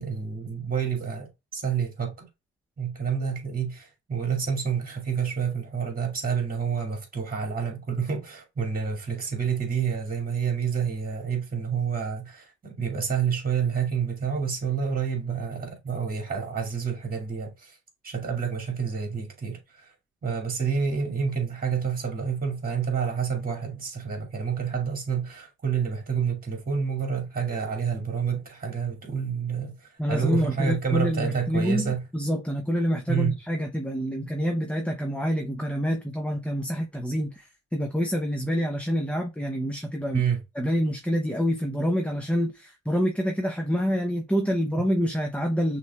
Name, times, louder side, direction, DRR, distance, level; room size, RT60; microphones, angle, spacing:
voice 1, 0.0-2.3 2.8-17.8 18.0-19.9 20.2-32.0 33.1-33.4 40.1-40.4, right 6 dB, 30° right, 2.3 m, -28 dB
voice 2, 30.0-40.2 40.6-45.8, equal, 5° left, 0.7 m, -27 dB
6.0 x 3.3 x 2.3 m
cardioid pair, 90°, 30 cm